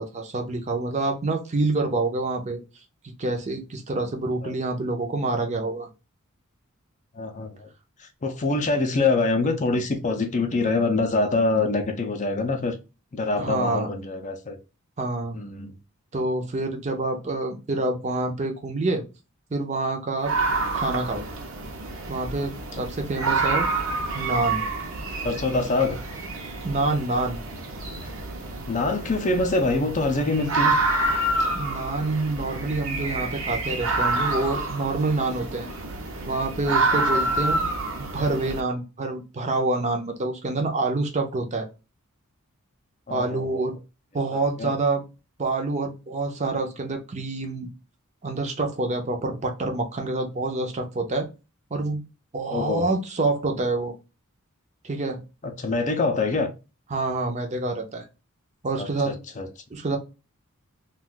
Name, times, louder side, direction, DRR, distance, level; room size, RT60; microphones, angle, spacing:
voice 1, 0.0-2.6 3.0-5.9 13.4-13.9 15.0-15.4 16.1-19.0 19.5-20.3 20.7-21.2 22.1-23.7 24.1-24.6 26.6-27.4 31.5-35.7 36.3-37.6 38.0-41.7 43.1-43.7 44.1-45.0 45.4-47.7 48.2-51.3 51.7-52.0 52.3-53.9 54.8-55.2 56.9-58.1 58.6-59.2 59.7-60.0, right 2 dB, 35° right, 0.6 m, -27 dB
voice 2, 7.1-7.7 8.0-12.8 13.1-14.6 15.3-15.7 25.2-26.0 28.7-30.8 43.1-43.6 44.6-44.7 52.5-52.9 55.4-56.5 58.8-59.5, left 3 dB, 35° left, 0.5 m, -25 dB
sound 1, 20.2-38.6, right 2 dB, 65° right, 0.7 m, -28 dB
2.5 x 2.3 x 3.7 m
head